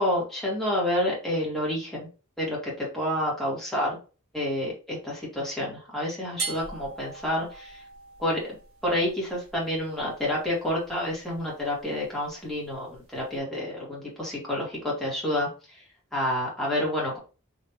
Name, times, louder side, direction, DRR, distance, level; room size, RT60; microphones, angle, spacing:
voice 1, 0.0-2.1 2.4-4.0 4.3-7.8 8.2-8.4 8.8-15.5 16.1-17.2, left 1 dB, ahead, -5 dB, 2.1 m, -29 dB
sound 1, 6.4-13.4, right 4 dB, 75° right, 1.7 m, -42 dB
4.1 x 3.3 x 2.9 m, 0.34 s
head